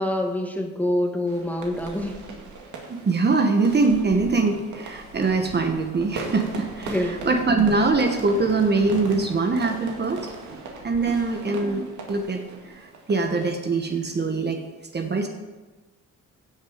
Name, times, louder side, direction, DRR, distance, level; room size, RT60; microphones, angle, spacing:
voice 1, 0.0-2.2 6.9-7.3, left 1 dB, 5° left, 3 dB, 1.7 m, -26 dB
sound 1, 1.3-14.1, right 4 dB, 75° right, 2.3 m, -39 dB
voice 2, 2.9-14.6 14.9-15.3, right 3 dB, 35° right, 4 dB, 1.3 m, -23 dB
Concrete demolition, 5.1-11.2, left 2 dB, 75° left, 3.1 m, -47 dB
16.5 x 6.3 x 5.1 m, 1.2 s
cardioid pair, 90°, 30 cm